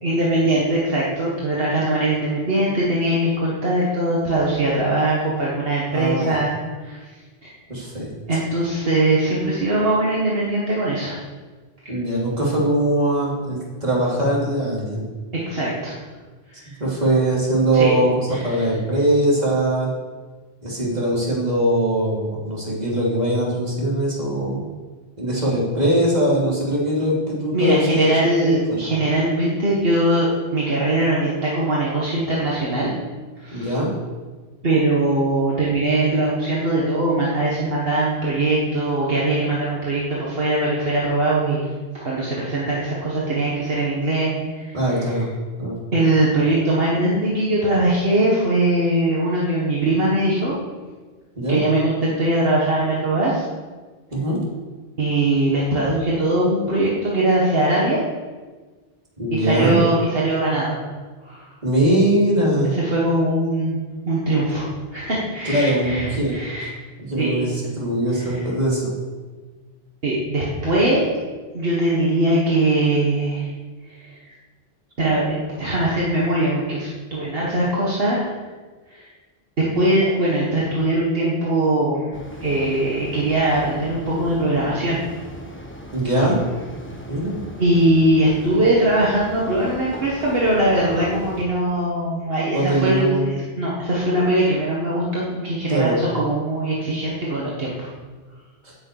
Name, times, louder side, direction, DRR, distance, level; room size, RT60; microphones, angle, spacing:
voice 1, 0.0-6.5 6.8-7.0 7.4-7.5 8.3-11.2 15.3-16.0 16.5-16.8 17.7-18.0 18.3-18.7 27.5-32.9 33.4-33.8 34.6-41.7 42.0-44.8 45.9-50.6 51.5-53.4 55.0-58.0 59.3-60.8 61.2-61.5 62.8-63.8 64.1-66.7 67.2-67.4 68.1-68.4 70.0-71.0 71.5-73.5 73.9-74.1 75.0-78.3 78.9-79.1 79.6-82.1 82.4-85.0 87.6-93.2 93.6-97.9, right 1 dB, 65° right, -5 dB, 1.9 m, -21 dB
voice 2, 5.9-6.4 7.7-8.1 11.9-15.0 16.8-19.9 20.6-24.7 25.2-28.8 33.5-33.9 44.7-45.3 45.6-45.8 51.3-51.6 54.1-54.4 59.2-59.8 61.6-62.7 65.4-66.4 67.0-68.9 85.9-86.4 87.1-87.4 92.5-93.4 95.7-96.0 98.6-98.8, right 1 dB, 40° right, -5 dB, 3.2 m, -21 dB
sound 1, 82.1-91.4, equal, 10° left, 1.2 m, -38 dB
9.9 x 6.6 x 8.2 m, 1.4 s
omnidirectional pair, 1.1 m